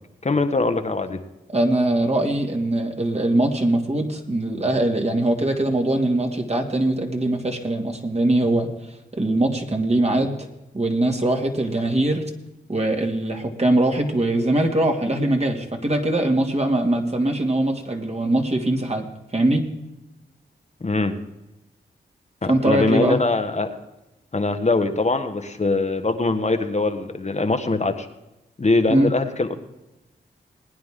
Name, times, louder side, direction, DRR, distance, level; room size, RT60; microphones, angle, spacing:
voice 1, 0.2-1.2 20.8-21.1 22.4-23.7 24.3-28.1 28.6-29.6, left 3 dB, 35° left, 6 dB, 1.4 m, -22 dB
voice 2, 1.5-8.7 9.1-10.5 10.7-12.3 12.7-19.7 22.5-23.2 28.9-29.1, right 1 dB, 35° right, 3 dB, 2.4 m, -22 dB
20.5 x 9.6 x 3.8 m, 0.95 s
supercardioid pair, 40°, 19 cm